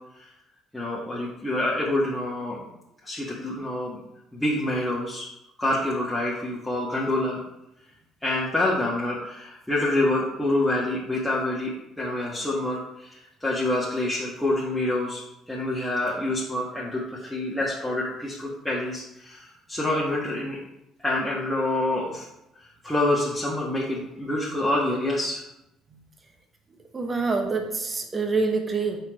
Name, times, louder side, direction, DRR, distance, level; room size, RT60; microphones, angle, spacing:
voice 1, 0.7-2.7 3.0-4.0 4.3-5.3 5.6-7.4 8.2-20.6 21.0-22.3 22.6-25.4, left 1 dB, 5° left, -6 dB, 1.4 m, -27 dB
voice 2, 26.9-29.0, right 4 dB, 30° right, 3 dB, 1.0 m, -26 dB
4.5 x 4.1 x 5.2 m, 0.86 s
hypercardioid pair, 60°, 0 cm